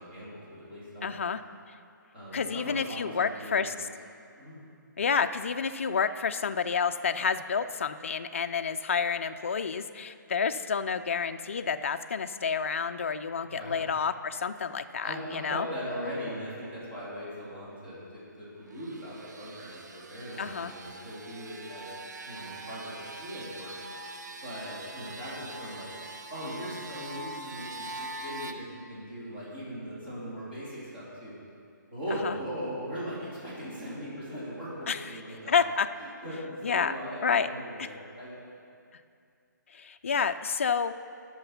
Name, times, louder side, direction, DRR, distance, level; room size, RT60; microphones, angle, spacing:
voice 1, 0.0-1.1 2.1-3.8 4.4-4.6 13.4-13.8 15.0-21.9 22.2-23.7 24.4-25.9 26.3-31.3 31.9-35.7 36.0-38.4, equal, 30° right, -8 dB, 2.8 m, -39 dB
voice 2, 1.0-1.4 1.7-1.8 2.3-3.7 5.0-15.7 20.4-20.7 32.2-32.3 34.9-35.0 35.5-35.9 36.6-36.9 37.2-37.5 37.8-37.9 39.7-41.0, left 6 dB, 40° left, 9 dB, 0.3 m, -29 dB
sound 1, 18.6-28.5, right 2 dB, 60° right, 0.7 m, -43 dB
11.5 x 6.1 x 5.6 m, 2.4 s
hypercardioid pair, 175°, 11 cm